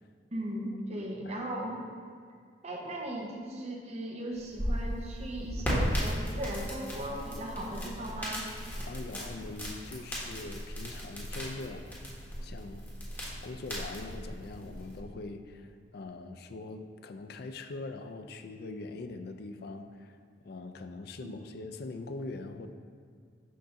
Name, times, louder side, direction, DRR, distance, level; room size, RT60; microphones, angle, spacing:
voice 1, 0.3-1.8 2.6-8.4 21.2-21.3, right 1 dB, 35° right, -1 dB, 0.8 m, -37 dB
voice 2, 0.9-1.4 8.9-12.0 12.4-12.9 13.4-20.2 20.4-22.7, left 3 dB, 60° left, 7 dB, 0.4 m, -42 dB
sound 1, 4.3-15.0, equal, 10° left, 1.2 m, -36 dB
6.5 x 2.6 x 5.6 m, 2.2 s
head